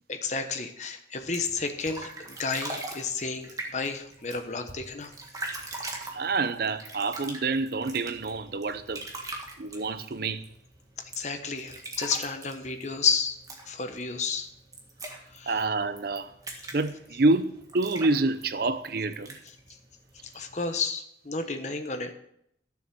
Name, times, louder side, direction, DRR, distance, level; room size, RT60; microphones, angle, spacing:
voice 1, 0.1-5.1 6.1-6.3 11.2-13.4 13.7-14.5 15.3-15.6 16.5-16.7 20.2-22.1, left 5 dB, 40° left, 1.1 m, -31 dB
sound 1, 1.2-20.8, right 2 dB, 20° right, 1.6 m, -42 dB
voice 2, 6.1-9.0 9.6-10.4 15.5-16.3 16.7-19.3, right 3 dB, 55° right, 0.6 m, -27 dB
12.5 x 7.1 x 6.1 m
head